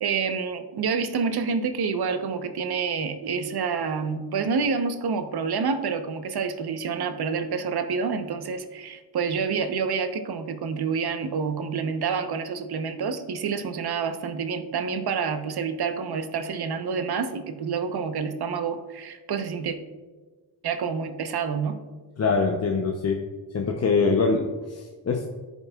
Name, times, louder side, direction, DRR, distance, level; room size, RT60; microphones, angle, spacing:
voice 1, 0.0-19.8 20.6-21.7, right 5 dB, 50° right, 8 dB, 1.1 m, -28 dB
voice 2, 22.2-23.2 23.5-25.3, left 4 dB, 30° left, 2 dB, 0.9 m, -24 dB
14.0 x 5.4 x 2.4 m, 1.3 s
supercardioid pair, 50°, 49 cm